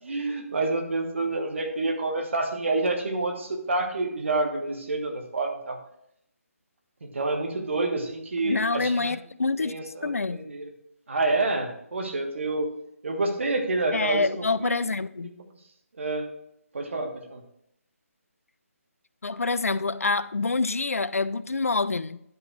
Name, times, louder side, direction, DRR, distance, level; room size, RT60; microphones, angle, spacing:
voice 1, 0.0-5.8 7.0-9.1 9.6-10.7 11.1-12.7 13.0-14.9 16.0-16.3 16.7-17.4, right 2 dB, 55° right, 1.4 m, -28 dB
voice 2, 8.4-9.7 10.0-10.4 13.9-15.3 19.2-22.2, left 3 dB, 70° left, 0.4 m, -26 dB
10.5 x 5.6 x 4.5 m
figure-of-eight pair, 150°, 8 cm